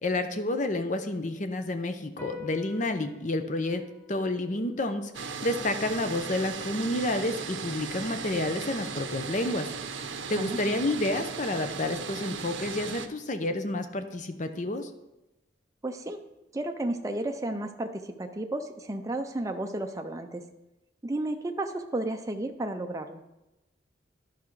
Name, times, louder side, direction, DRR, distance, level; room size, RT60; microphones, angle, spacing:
voice 1, 0.0-3.8 4.1-9.7 10.0-14.9, left 2 dB, 40° left, 8 dB, 0.7 m, -30 dB
sound 1, 2.2-8.9, left 7 dB, 10° left, 1.3 m, -49 dB
sound 2, 5.1-13.1, right 5 dB, 75° right, 0.7 m, -37 dB
voice 2, 15.8-16.2 16.5-20.4 21.0-23.2, right 1 dB, 15° right, 4 dB, 0.5 m, -33 dB
11.0 x 5.7 x 4.7 m, 0.97 s
head